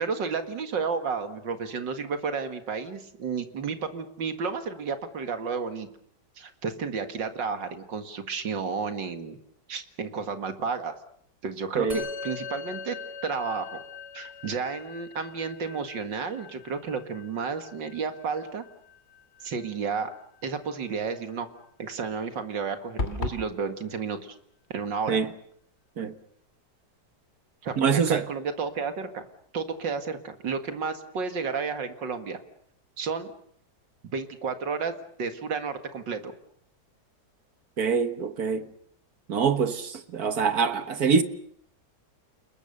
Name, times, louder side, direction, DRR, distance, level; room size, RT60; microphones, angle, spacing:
voice 1, 0.0-5.9 6.4-9.4 9.7-10.9 11.4-13.0 13.2-13.8 14.1-18.6 19.4-20.1 20.4-21.5 21.8-24.4 24.7-25.2 27.6-29.2 29.5-32.4 33.0-33.3 34.1-36.3, right 5 dB, 85° right, 2.6 m, -32 dB
Musical instrument, 11.9-21.4, left 4 dB, 20° right, 5.8 m, -43 dB
sound 1, 23.0-23.5, left 2 dB, 35° left, 3.0 m, -29 dB
voice 2, 27.8-28.3 37.8-38.7 39.3-41.2, right 6 dB, 55° right, 1.9 m, -24 dB
30.0 x 20.5 x 6.7 m
omnidirectional pair, 1.9 m